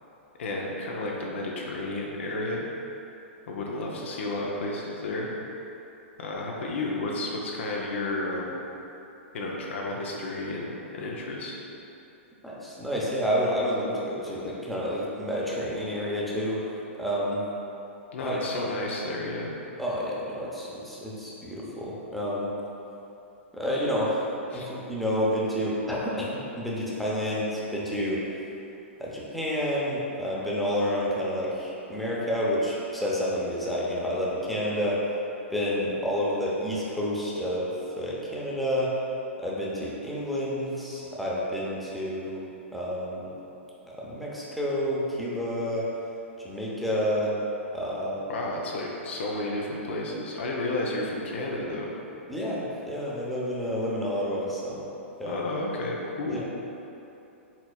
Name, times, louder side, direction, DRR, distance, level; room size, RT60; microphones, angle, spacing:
voice 1, 0.4-2.7 3.5-5.3 6.2-8.6 9.3-11.6 18.1-19.6 24.5-24.7 48.3-51.9 55.3-56.4, left 2 dB, 65° left, -2 dB, 0.6 m, -32 dB
voice 2, 12.4-17.4 18.2-18.7 19.8-22.5 23.5-26.2 26.6-28.2 29.0-35.0 35.5-38.9 39.4-42.4 42.7-43.3 44.0-45.9 46.4-47.3 47.7-48.4 52.3-54.8 55.2-55.4 56.3-56.4, equal, ahead, -7 dB, 0.7 m, -29 dB
4.3 x 4.0 x 2.3 m, 2.9 s
hypercardioid pair, 115°, 7 cm